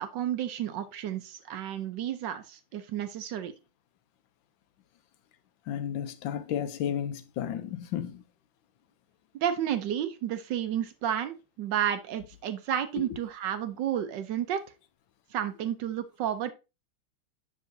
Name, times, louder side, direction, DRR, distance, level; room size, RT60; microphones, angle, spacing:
voice 1, 0.0-3.5 9.3-14.6 15.3-16.5, right 10 dB, 70° right, 1.2 m, -31 dB
voice 2, 5.7-8.2 13.0-13.1, left 9 dB, 75° left, 1.3 m, -33 dB
7.5 x 6.1 x 2.6 m
omnidirectional pair, 2.2 m